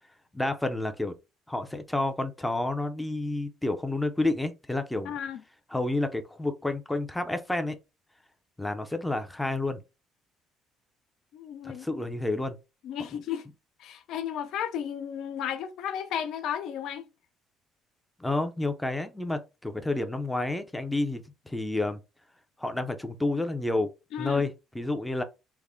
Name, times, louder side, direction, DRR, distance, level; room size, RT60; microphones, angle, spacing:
voice 1, 0.3-1.1 1.5-5.1 5.7-7.8 8.6-9.8 11.8-12.6 13.1-13.2 18.2-22.0 22.6-23.9 24.2-25.2, left 2 dB, 5° left, 0.5 m, -30 dB
voice 2, 5.0-5.4 11.3-12.0 12.8-13.4 13.8-17.0 24.1-24.4, left 9 dB, 70° left, 0.4 m, -34 dB
3.4 x 2.1 x 3.6 m
cardioid pair, 120°, 0 cm